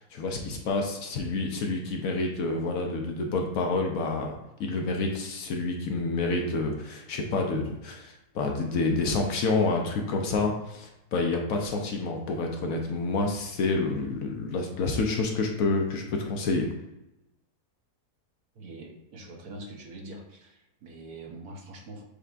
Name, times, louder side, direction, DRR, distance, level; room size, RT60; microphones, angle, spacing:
voice 1, 0.0-16.7, left 3 dB, 65° left, 2 dB, 1.0 m, -28 dB
voice 2, 18.5-22.0, right 2 dB, 70° right, 0 dB, 1.3 m, -44 dB
6.6 x 3.3 x 2.5 m, 0.93 s
omnidirectional pair, 1.7 m